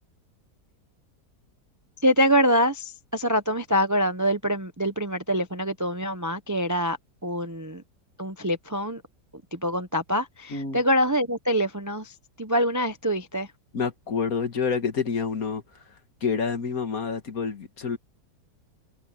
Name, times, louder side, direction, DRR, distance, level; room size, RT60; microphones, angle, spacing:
voice 1, 2.0-7.0 7.2-7.8 8.2-9.0 9.5-13.5, equal, 15° right, 0.6 m, -25 dB
voice 2, 13.7-15.8 16.2-18.0, left 5 dB, 60° left, 2.1 m, -28 dB
omnidirectional pair, 1.8 m